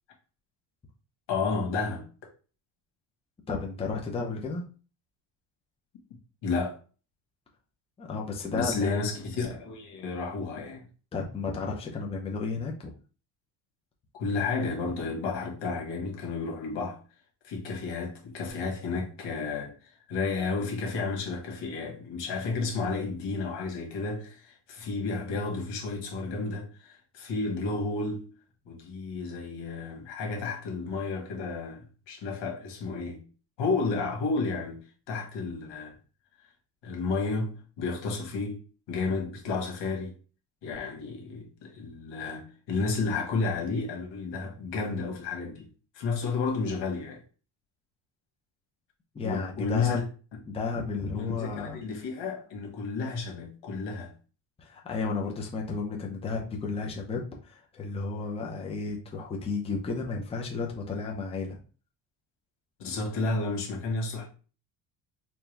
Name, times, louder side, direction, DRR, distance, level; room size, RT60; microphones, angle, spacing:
voice 1, 1.3-2.1 6.4-6.8 8.5-10.8 14.2-17.0 17.4-28.3 28.7-33.2 33.6-35.9 36.8-38.6 38.9-40.1 40.6-45.7 45.9-47.2 49.2-50.0 51.1-54.1 62.8-64.3, left 4 dB, 80° left, 1.5 m, -32 dB
voice 2, 3.5-4.6 8.0-9.0 11.1-12.9 49.1-50.0 50.5-51.8 54.6-61.6, left 4 dB, 15° left, 0.6 m, -33 dB
4.4 x 2.3 x 3.3 m
cardioid pair, 150°, 42 cm